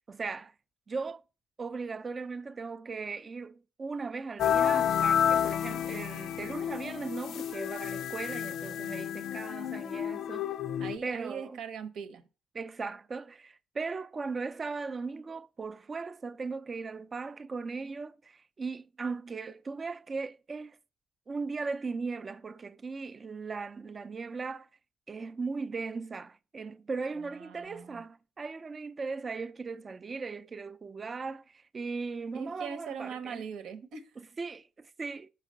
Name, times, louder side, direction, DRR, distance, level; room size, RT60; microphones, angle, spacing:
voice 1, 0.2-0.5 0.9-1.2 1.6-10.5 11.0-11.6 12.5-20.8 21.3-24.7 25.1-33.5 34.2-35.3, right 4 dB, 35° right, 0.5 m, -38 dB
sound 1, 4.4-11.0, left 9 dB, 75° left, 0.4 m, -30 dB
voice 2, 10.8-12.2 27.2-28.0 32.3-34.1, right 7 dB, 80° right, 1.0 m, -41 dB
5.7 x 4.8 x 6.2 m
cardioid pair, 90°, 0 cm